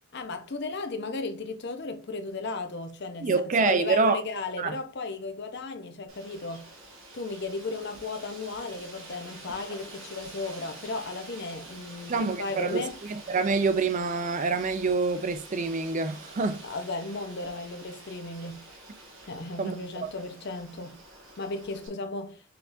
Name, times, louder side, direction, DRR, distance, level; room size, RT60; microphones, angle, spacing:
voice 1, 0.1-3.3 3.6-6.7 7.1-13.0 16.6-18.7 19.2-21.0 21.4-22.4, left 3 dB, 55° left, 0.7 m, -35 dB
voice 2, 3.2-4.2 4.6-4.8 12.1-16.6 19.6-19.8 20.0-20.1, right 4 dB, 35° right, 0.4 m, -26 dB
Wind, 6.1-21.9, right 2 dB, 70° right, 2.4 m, -47 dB
5.8 x 3.6 x 2.6 m
head